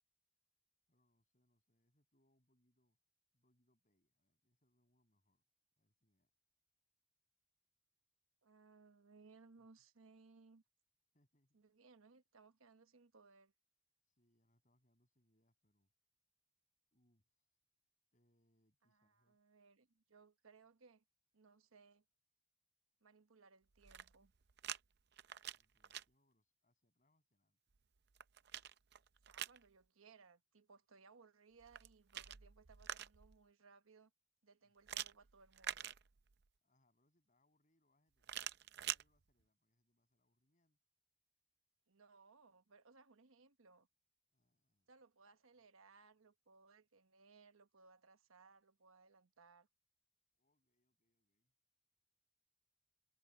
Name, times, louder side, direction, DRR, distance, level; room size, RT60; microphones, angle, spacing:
voice 1, 0.9-3.0 3.3-5.4 5.8-6.3 9.6-9.7 11.1-11.8 14.1-15.9 16.9-17.6 18.1-19.4 25.5-27.6 34.6-35.1 36.6-40.8 44.3-44.9 50.3-51.5, left 1 dB, 40° left, 7.6 m, -82 dB
voice 2, 8.4-10.6 11.5-13.5 18.8-21.0 21.3-22.0 23.0-24.3 29.2-34.1 34.4-35.9 41.9-43.9 44.9-49.7, right 4 dB, 90° right, 1.1 m, -65 dB
sound 1, 23.7-24.8 25.1-26.0 27.7-29.6 31.6-33.4 34.9-36.4 38.2-39.0, right 11 dB, 55° right, 0.6 m, -46 dB
head